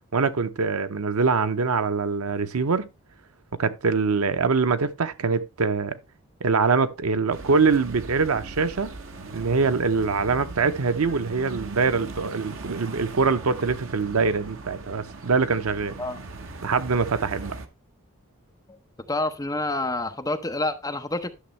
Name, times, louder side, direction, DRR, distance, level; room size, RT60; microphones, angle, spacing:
voice 1, 0.1-2.9 3.5-6.0 6.4-8.9 9.3-15.9 16.6-17.5, right 4 dB, 90° right, 0.7 m, -24 dB
sound 1, 7.3-17.7, right 3 dB, 70° right, 1.0 m, -39 dB
voice 2, 19.1-21.3, left 2 dB, 15° left, 0.8 m, -28 dB
11.5 x 6.3 x 3.2 m
head